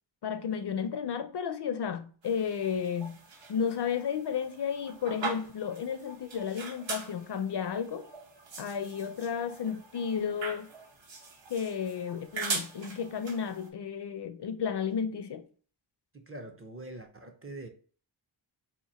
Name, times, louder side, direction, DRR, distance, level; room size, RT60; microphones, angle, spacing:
voice 1, 0.2-3.2 3.5-8.0 8.6-10.7 11.5-15.5, left 7 dB, 55° left, 0.5 m, -33 dB
sound 1, 2.2-13.7, right 4 dB, 65° right, 1.0 m, -41 dB
voice 2, 16.1-17.7, right 2 dB, 30° right, 0.5 m, -44 dB
2.9 x 2.6 x 4.1 m
wide cardioid pair, 125°, 49 cm